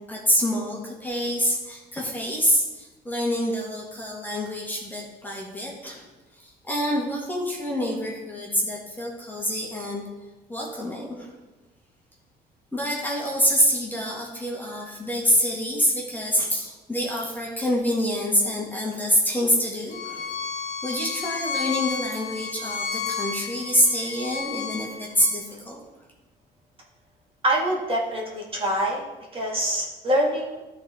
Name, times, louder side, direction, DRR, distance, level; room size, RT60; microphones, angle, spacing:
voice 1, 0.1-6.1 6.4-10.0 10.5-11.3 12.7-20.3 20.8-25.8, equal, 10° left, -3 dB, 1.9 m, -26 dB
Bowed string instrument, 19.9-25.3, left 6 dB, 45° left, 1.4 m, -32 dB
voice 2, 27.4-29.0 29.3-30.6, right 1 dB, 30° right, -3 dB, 2.0 m, -25 dB
12.0 x 4.2 x 3.8 m, 1.1 s
cardioid pair, 110°, 17 cm